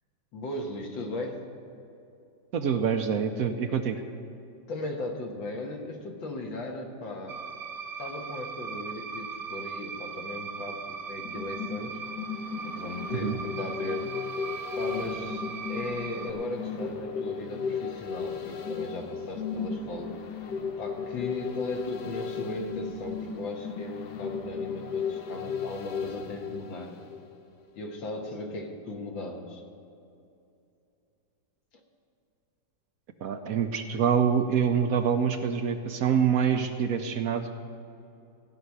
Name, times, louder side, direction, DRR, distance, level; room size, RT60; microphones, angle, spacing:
voice 1, 0.3-1.4 4.7-7.4 8.0-12.0 12.6-14.1 14.8-20.2 20.8-26.9 27.8-29.6, left 2 dB, 80° left, 2 dB, 2.1 m, -37 dB
voice 2, 2.5-4.0 13.1-13.4 33.2-37.6, right 7 dB, 65° right, 6 dB, 0.9 m, -26 dB
sound 1, 7.3-16.3, right 6 dB, 85° right, 0.5 m, -39 dB
sound 2, 11.2-27.5 27.8-27.9, left 6 dB, 65° left, 1.3 m, -35 dB
15.5 x 5.7 x 9.5 m, 2.7 s
omnidirectional pair, 2.1 m